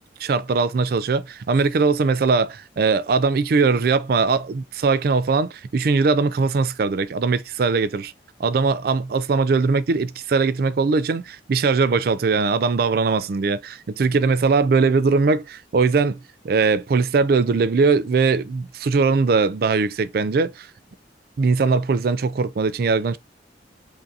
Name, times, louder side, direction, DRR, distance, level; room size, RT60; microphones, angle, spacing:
voice 1, 0.2-8.1 8.4-16.2 16.4-20.7 21.4-23.2, right 4 dB, 55° right, 0.4 m, -20 dB
5.4 x 2.6 x 2.7 m
head